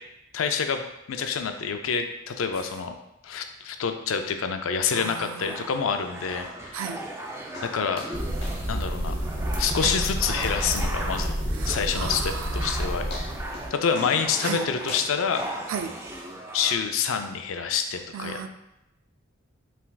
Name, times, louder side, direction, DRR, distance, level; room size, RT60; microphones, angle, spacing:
voice 1, 0.3-3.0 3.2-6.8 7.6-8.1 8.7-9.2 9.6-11.3 11.6-13.1 13.7-15.5 16.5-18.4, left 6 dB, 90° left, 7 dB, 0.4 m, -27 dB
voice 2, 4.9-5.6 6.7-7.0 9.8-10.0 11.5-12.7 14.4-14.7 15.7-16.0 18.1-18.5, right 7 dB, 90° right, 8 dB, 0.4 m, -34 dB
sound 1, 5.4-16.8, right 1 dB, 15° right, 0.4 m, -38 dB
sound 2, 7.5-7.7 8.0-8.2 8.4-8.6 8.9-9.0 9.4-9.5 9.9-10.0 10.4-10.5 12.2-12.3 12.7-12.8 13.1-13.7 14.0-14.2 14.4-15.9 16.6-16.7, left 2 dB, 55° left, 0.9 m, -39 dB
sound 3, 8.1-13.7, equal, 45° right, 0.8 m, -29 dB
5.7 x 3.3 x 2.3 m, 0.89 s
head